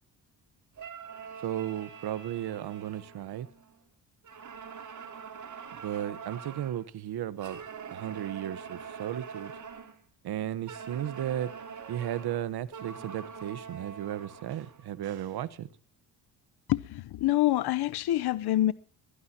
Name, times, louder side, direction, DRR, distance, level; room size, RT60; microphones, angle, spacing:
sound 1, 0.8-3.8 4.2-6.8 7.4-10.0 10.7-14.9, right 6 dB, 45° right, 2.7 m, -44 dB
voice 1, 1.4-3.5 5.8-7.6 7.9-9.5 10.2-11.5 11.9-15.7, right 11 dB, 65° right, 1.2 m, -35 dB
voice 2, 16.7-18.7, left 14 dB, 65° left, 0.9 m, -26 dB
23.0 x 16.0 x 2.9 m
cardioid pair, 110°, 42 cm